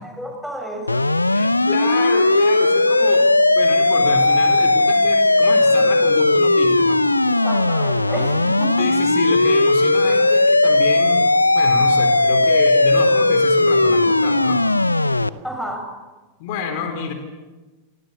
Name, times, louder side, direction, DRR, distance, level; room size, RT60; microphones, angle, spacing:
voice 1, 0.0-1.1 7.2-8.9 15.4-15.9, right 1 dB, ahead, 5 dB, 6.9 m, -31 dB
sound 1, 0.9-15.3, left 2 dB, 85° left, 0.8 m, -16 dB
voice 2, 1.3-3.3 3.5-7.0 8.8-11.3 11.5-14.6 16.4-17.1, left 6 dB, 50° left, 6 dB, 4.4 m, -28 dB
29.5 x 25.5 x 7.0 m, 1.2 s
figure-of-eight pair, 90°, 0 cm